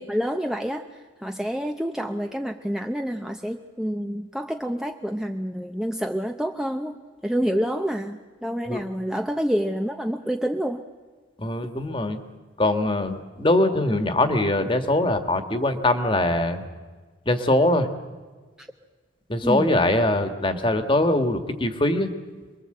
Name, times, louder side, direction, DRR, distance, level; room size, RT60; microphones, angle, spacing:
voice 1, 0.0-10.8 18.6-18.7 19.4-19.8, equal, 5° right, 4 dB, 0.7 m, -28 dB
voice 2, 11.4-12.2 12.6-16.6 17.2-17.9 19.3-22.1, left 1 dB, 25° left, 8 dB, 1.6 m, -22 dB
27.0 x 22.0 x 7.9 m, 1.4 s
head